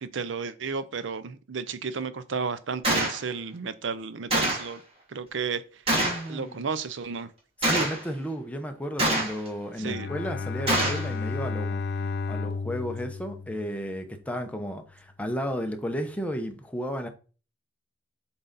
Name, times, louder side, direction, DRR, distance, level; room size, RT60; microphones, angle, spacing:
voice 1, 0.0-4.8 5.1-5.6 6.3-7.3 9.8-10.1, right 5 dB, 65° right, 0.6 m, -33 dB
Gunshot gunfire, 2.8-3.2 4.3-4.7 5.9-6.3 7.6-8.0 9.0-9.5 10.7-11.1, right 1 dB, 30° right, 2.5 m, -25 dB
voice 2, 5.9-6.7 7.6-11.8 12.3-17.1, equal, 5° left, 0.8 m, -33 dB
Bowed string instrument, 9.8-14.2, left 4 dB, 55° left, 0.5 m, -33 dB
7.8 x 3.9 x 4.0 m
head